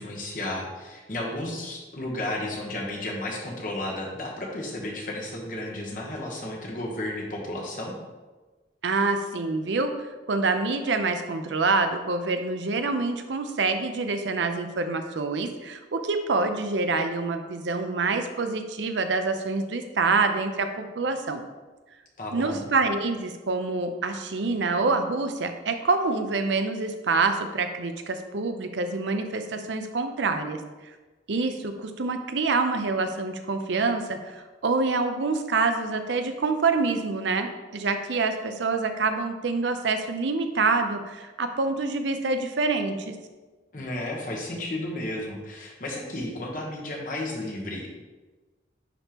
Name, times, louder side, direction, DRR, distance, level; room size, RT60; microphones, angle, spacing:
voice 1, 0.0-8.0 22.2-22.7 43.7-47.9, left 1 dB, 45° left, -1 dB, 1.1 m, -33 dB
voice 2, 8.8-9.9 10.3-21.4 22.3-30.6 31.3-43.1, right 3 dB, 85° right, 7 dB, 0.6 m, -26 dB
9.8 x 3.5 x 3.0 m, 1.3 s
head